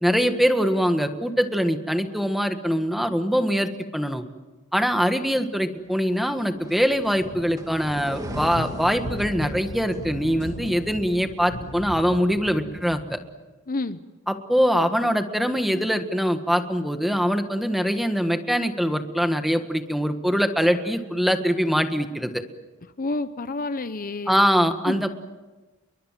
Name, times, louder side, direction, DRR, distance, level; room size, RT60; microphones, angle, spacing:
voice 1, 0.0-4.2 4.7-13.2 14.3-22.4 24.3-25.1, equal, ahead, 7 dB, 1.6 m, -23 dB
sound 1, 6.6-11.3, right 1 dB, 15° right, 2.4 m, -40 dB
sound 2, 6.8-13.0, left 1 dB, 70° left, 5.5 m, -36 dB
voice 2, 13.7-14.0 23.0-24.4 24.9-25.0, left 2 dB, 40° left, 12 dB, 0.8 m, -29 dB
29.0 x 23.0 x 7.6 m, 1.2 s
head